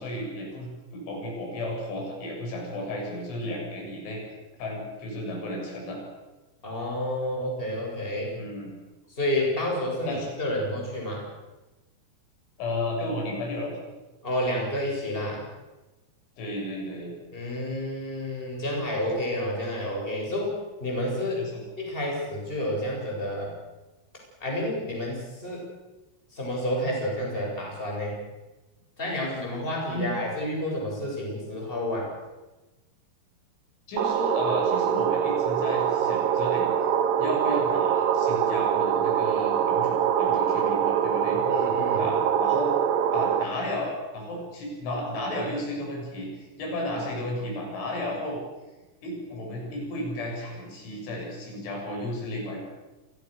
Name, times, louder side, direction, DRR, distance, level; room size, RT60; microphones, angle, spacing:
voice 1, 0.0-4.2 4.6-6.0 8.3-8.7 10.1-10.3 12.6-13.8 16.4-17.1 21.4-21.6 29.9-30.1 33.9-36.9 37.2-41.4 42.0-42.7 43.1-48.4 49.0-52.6, left 1 dB, 80° left, 0 dB, 9.2 m, -33 dB
voice 2, 6.6-8.3 9.1-11.2 14.2-15.4 17.3-20.5 20.8-21.4 21.8-23.5 24.4-25.7 26.3-28.1 29.0-32.1 41.4-42.1, left 1 dB, 10° left, -1 dB, 7.5 m, -30 dB
sound 1, 34.0-43.4, right 9 dB, 65° right, 2.5 m, -24 dB
29.0 x 23.5 x 6.7 m, 1.1 s
omnidirectional pair, 5.4 m